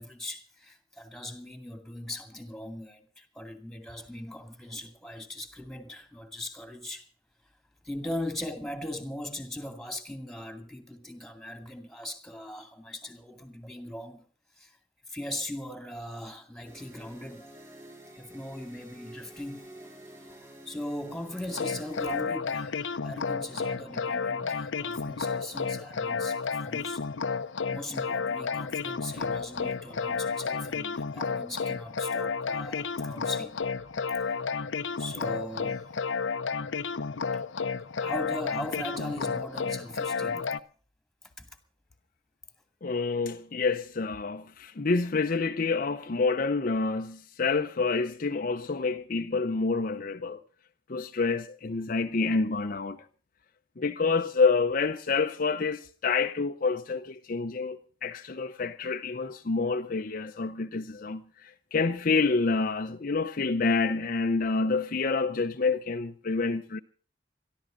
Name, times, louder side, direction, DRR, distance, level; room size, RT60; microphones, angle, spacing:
voice 1, 0.0-7.1 7.8-14.2 14.6-14.8 15.1-17.7 18.2-19.7 20.2-27.0 27.7-33.6 34.1-34.5 35.0-35.9 37.3-37.4 38.0-40.5 41.4-41.5, left 1 dB, ahead, 2.3 m, -39 dB
sound 1, 16.6-22.2, right 1 dB, 15° right, 6.5 m, -49 dB
sound 2, 21.5-40.6, left 5 dB, 90° left, 0.7 m, -32 dB
voice 2, 42.8-50.4 50.9-53.0 53.8-66.8, left 4 dB, 50° left, 0.7 m, -28 dB
22.0 x 14.0 x 3.8 m
head